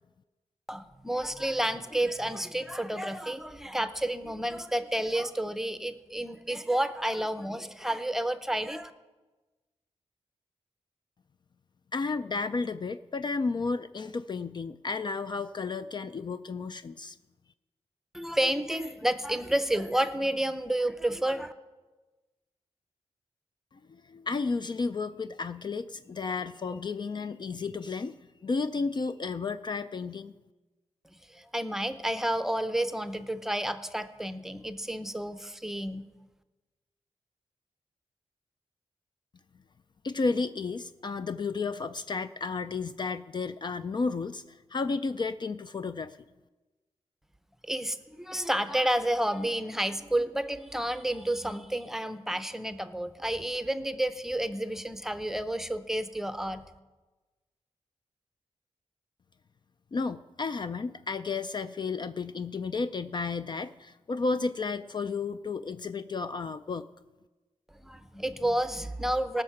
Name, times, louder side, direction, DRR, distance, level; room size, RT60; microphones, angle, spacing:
voice 1, 0.7-8.9 18.1-21.5 31.3-36.0 47.6-56.6 67.7-69.4, right 1 dB, 5° right, 11 dB, 0.7 m, -30 dB
voice 2, 11.9-17.2 23.9-30.3 40.0-46.2 59.9-66.9, left 4 dB, 40° left, 11 dB, 0.4 m, -32 dB
18.0 x 6.5 x 5.8 m, 1.2 s
wide cardioid pair, 100°, 11 cm